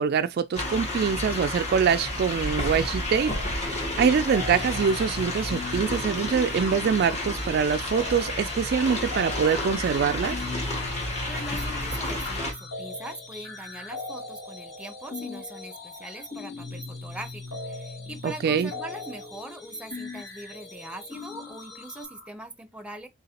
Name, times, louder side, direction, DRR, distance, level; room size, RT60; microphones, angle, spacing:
voice 1, 0.0-10.4 18.2-18.7, right 6 dB, 50° right, 0.3 m, -24 dB
sound 1, 0.5-12.5, left 1 dB, 35° left, 1.6 m, -31 dB
sound 2, 3.1-3.7 4.0-22.3, left 3 dB, 80° left, 2.0 m, -40 dB
sound 3, 4.6-22.1, left 4 dB, 60° left, 1.5 m, -49 dB
voice 2, 11.2-23.1, right 1 dB, 5° right, 0.6 m, -41 dB
4.0 x 3.8 x 2.8 m
head